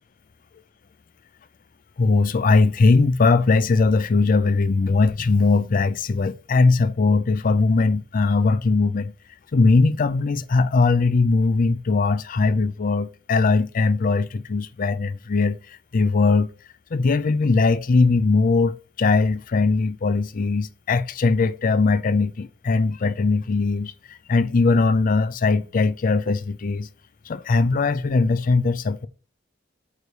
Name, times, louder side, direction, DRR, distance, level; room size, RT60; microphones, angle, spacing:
voice 1, 2.0-9.1 9.5-16.5 16.9-26.9 27.3-29.1, left 3 dB, 45° left, 0.4 m, -20 dB
9.1 x 3.3 x 6.6 m
head